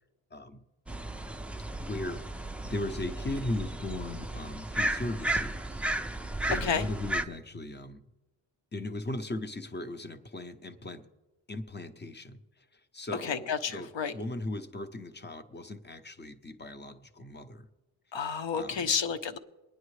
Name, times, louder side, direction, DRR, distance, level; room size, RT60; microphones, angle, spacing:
voice 1, 0.3-0.7 1.8-2.4 2.6-5.6 6.4-8.0 8.7-11.0 11.5-12.4 12.9-17.7 18.5-18.9, left 2 dB, 20° left, 9 dB, 0.7 m, -38 dB
sound 1, 0.9-7.2, right 1 dB, 5° right, 0.3 m, -34 dB
voice 2, 13.2-14.1 18.1-19.4, left 6 dB, 60° left, 9 dB, 0.9 m, -31 dB
23.5 x 10.0 x 3.2 m, 1.1 s
wide cardioid pair, 145°, 49 cm